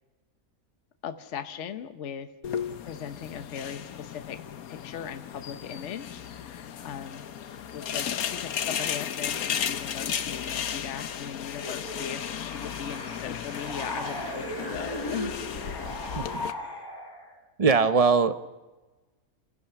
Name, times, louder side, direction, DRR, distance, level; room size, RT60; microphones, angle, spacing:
voice 1, 1.0-2.3 2.9-4.4 4.7-7.3 7.7-15.4, left 8 dB, 60° left, 8 dB, 1.2 m, -39 dB
sound 1, 2.4-16.5, left 8 dB, 85° left, 1.3 m, -35 dB
sound 2, 11.5-17.4, equal, 15° left, 3.4 m, -37 dB
voice 2, 15.9-16.3 17.6-18.3, right 5 dB, 35° right, 11 dB, 0.7 m, -21 dB
29.0 x 15.5 x 5.9 m, 1.2 s
omnidirectional pair, 1.5 m